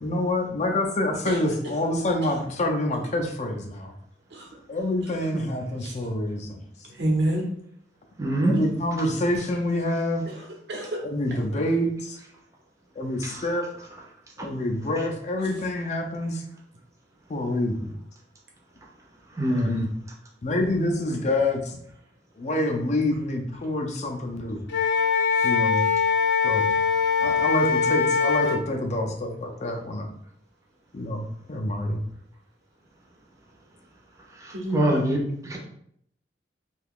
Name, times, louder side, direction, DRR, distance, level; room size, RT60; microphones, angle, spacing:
voice 1, 0.0-3.9 4.7-6.6 8.4-10.2 11.0-12.2 13.0-13.9 14.4-16.4 17.3-17.9 19.5-19.9 20.4-21.8 22.4-24.6 25.0-25.1 25.4-25.8 26.4-26.7 27.2-30.1 30.9-32.0, left 1 dB, 40° left, 2 dB, 0.4 m, -27 dB
voice 2, 6.9-7.4 10.3-11.0 25.3-25.5 34.5-34.9, right 1 dB, 70° right, -1 dB, 0.9 m, -28 dB
voice 3, 8.2-8.5 19.4-19.7 34.4-35.2 35.4-35.6, right 1 dB, 20° right, -2 dB, 0.6 m, -23 dB
Wind instrument woodwind instrument, 24.7-28.6, left 6 dB, 90° left, 0.5 m, -22 dB
2.8 x 2.3 x 3.5 m, 0.68 s
head